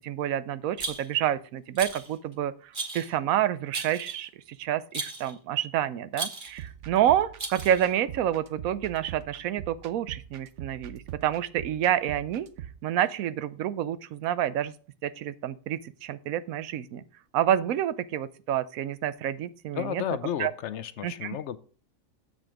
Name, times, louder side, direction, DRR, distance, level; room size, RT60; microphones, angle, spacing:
voice 1, 0.0-12.5 12.8-14.7 15.0-17.0 17.3-20.0 20.4-20.5 21.0-21.4, right 11 dB, 90° right, 16 dB, 1.1 m, -28 dB
Rattle, 0.8-1.3 1.8-2.1 2.7-3.1 3.7-4.3 4.9-5.3 6.1-6.6 7.4-7.9, right 3 dB, 40° right, 1.6 m, -36 dB
sound 1, 6.5-12.8, right 11 dB, 65° right, 1.0 m, -43 dB
voice 2, 19.7-21.6, left 9 dB, 65° left, 13 dB, 0.8 m, -32 dB
7.9 x 6.2 x 5.0 m, 0.40 s
omnidirectional pair, 1.4 m